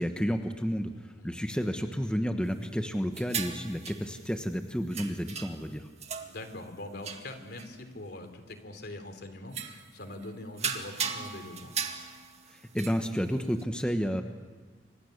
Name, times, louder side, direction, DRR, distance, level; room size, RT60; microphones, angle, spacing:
voice 1, 0.0-5.9 12.7-14.2, equal, 5° left, 5 dB, 1.3 m, -31 dB
sound 1, 3.1-4.4 4.9-5.7 6.0-6.8 7.0-7.7 8.5-8.6 9.5-9.9 10.2-10.3 10.6-13.6, right 6 dB, 35° right, 2.0 m, -37 dB
voice 2, 6.2-11.7, left 1 dB, 65° left, 7 dB, 3.3 m, -43 dB
28.5 x 25.0 x 6.7 m, 1.4 s
head